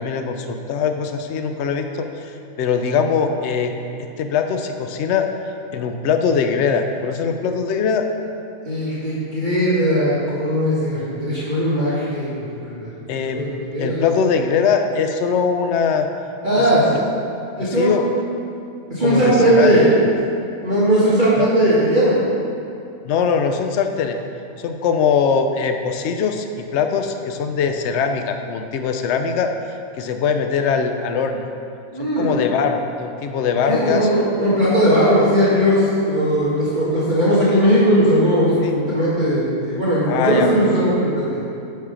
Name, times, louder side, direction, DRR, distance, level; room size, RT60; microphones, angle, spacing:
voice 1, 0.0-3.7 4.0-5.3 5.7-8.1 13.1-13.5 13.8-16.1 16.6-17.1 17.6-18.1 19.0-19.8 21.4-21.5 23.1-24.2 24.6-29.5 30.0-31.5 32.2-34.1 38.6-38.7 40.1-40.5, left 6 dB, 60° left, 6 dB, 0.8 m, -21 dB
voice 2, 8.6-13.4 13.7-14.0 16.4-17.0 17.6-17.9 18.9-19.9 20.6-22.2 31.9-32.3 33.7-41.4, equal, 35° right, -10 dB, 1.7 m, -18 dB
7.6 x 5.7 x 5.0 m, 2.6 s
omnidirectional pair, 1.6 m